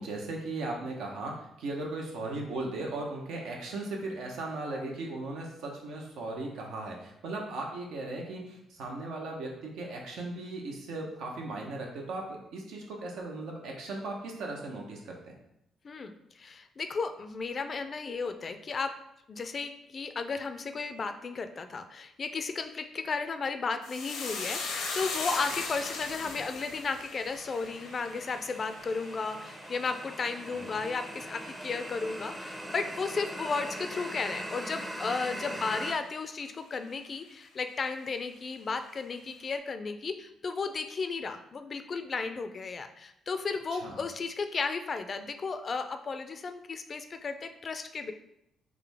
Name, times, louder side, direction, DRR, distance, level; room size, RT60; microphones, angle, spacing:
voice 1, 0.0-12.2 12.5-15.3 30.5-30.7 35.5-35.6 43.7-44.0, right 2 dB, 85° right, 0 dB, 0.9 m, -37 dB
voice 2, 15.8-18.9 19.3-48.1, left 4 dB, 40° left, 8 dB, 0.4 m, -34 dB
sound 1, 23.8-32.4 32.7-33.4 33.7-33.9, left 4 dB, 85° left, 0.8 m, -39 dB
sound 2, 27.4-35.9, right 1 dB, 15° right, 0.5 m, -41 dB
3.8 x 3.1 x 3.4 m, 0.79 s
cardioid pair, 90°, 0 cm